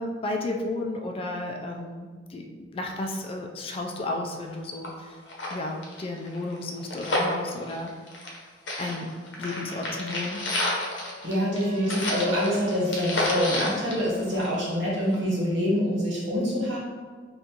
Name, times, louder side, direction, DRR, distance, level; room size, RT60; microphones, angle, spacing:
voice 1, 0.0-2.4 2.7-5.2 5.5-7.9 8.8-9.1 9.4-10.4, left 2 dB, 30° left, 2 dB, 0.3 m, -33 dB
sound 1, 4.5-4.6 4.8-4.9 5.2-8.4 8.7-14.8 15.1-15.2, left 1 dB, 85° left, 0.7 m, -30 dB
Wind instrument woodwind instrument, 9.4-13.5, left 1 dB, 40° right, 0.6 m, -44 dB
voice 2, 11.2-16.8, equal, 80° right, -6 dB, 1.1 m, -26 dB
2.8 x 2.5 x 3.6 m, 1.5 s
head